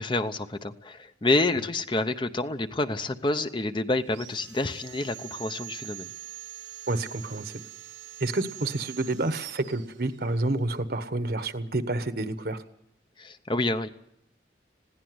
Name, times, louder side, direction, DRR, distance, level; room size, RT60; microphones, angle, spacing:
voice 1, 0.0-6.1 13.2-13.9, left 2 dB, 25° left, 9 dB, 0.7 m, -28 dB
Sawing, 4.0-10.5, right 15 dB, 85° right, 1.4 m, -44 dB
voice 2, 6.9-7.6 8.2-12.6, right 2 dB, 55° right, 11 dB, 1.2 m, -29 dB
20.5 x 16.0 x 7.9 m, 0.75 s
head